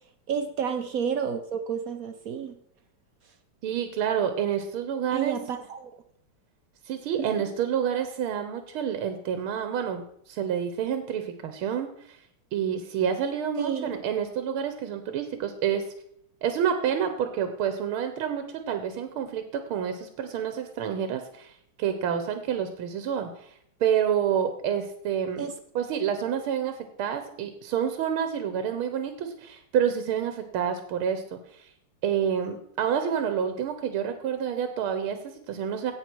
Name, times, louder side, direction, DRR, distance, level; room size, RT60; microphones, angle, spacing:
voice 1, 0.3-2.5 5.1-5.9 7.2-7.5 13.6-14.0 25.4-25.5, right 7 dB, 65° right, 8 dB, 0.9 m, -31 dB
voice 2, 3.6-5.4 6.8-12.2 12.5-15.9 16.4-19.4 19.7-23.5 23.8-25.5 25.7-31.7 32.0-35.9, right 8 dB, 90° right, 8 dB, 1.8 m, -28 dB
16.5 x 6.0 x 4.5 m, 0.69 s
omnidirectional pair, 2.3 m